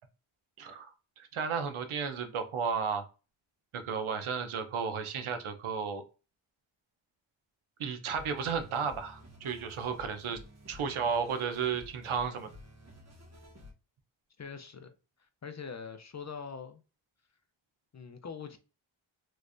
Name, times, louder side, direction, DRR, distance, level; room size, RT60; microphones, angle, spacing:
voice 1, 0.6-3.0 3.7-6.0 7.8-10.4 10.7-12.5, right 6 dB, 75° right, 0.8 m, -33 dB
sound 1, 8.1-13.7, left 1 dB, 30° right, 1.1 m, -52 dB
voice 2, 14.4-14.9 15.4-16.8 17.9-18.6, left 6 dB, 35° left, 0.5 m, -43 dB
3.2 x 3.2 x 2.5 m
cardioid pair, 75°, 50 cm